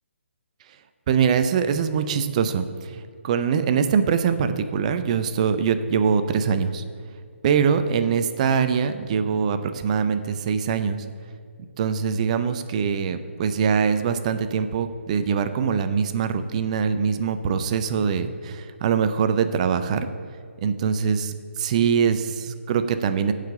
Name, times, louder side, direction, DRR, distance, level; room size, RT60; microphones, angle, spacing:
voice 1, 1.1-6.8 7.4-11.0 11.8-20.1 20.6-23.3, right 6 dB, 30° right, 10 dB, 0.6 m, -23 dB
9.2 x 4.9 x 6.8 m, 2.1 s
figure-of-eight pair, 145°, 7 cm